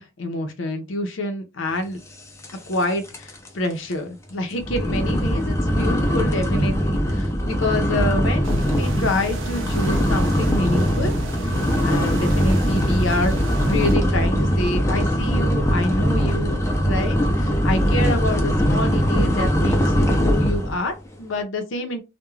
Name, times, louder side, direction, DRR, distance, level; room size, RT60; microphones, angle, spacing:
voice 1, 0.0-2.0 2.7-11.2 11.8-22.0, left 1 dB, 75° left, 0.6 m, -27 dB
sound 1, 2.4-2.8 3.1-3.5 3.9-4.0 4.6-20.8, equal, 15° left, 0.5 m, -21 dB
sound 2, 8.4-14.0, right 2 dB, 75° right, 0.5 m, -33 dB
2.3 x 2.2 x 3.0 m
head